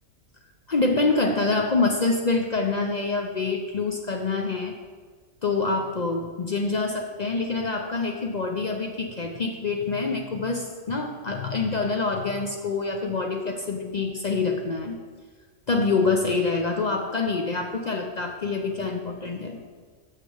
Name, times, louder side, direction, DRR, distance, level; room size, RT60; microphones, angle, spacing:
voice 1, 0.7-4.7 5.4-15.0 15.7-19.6, left 3 dB, 50° left, 3 dB, 0.5 m, -26 dB
6.0 x 5.7 x 7.1 m, 1.5 s
omnidirectional pair, 1.4 m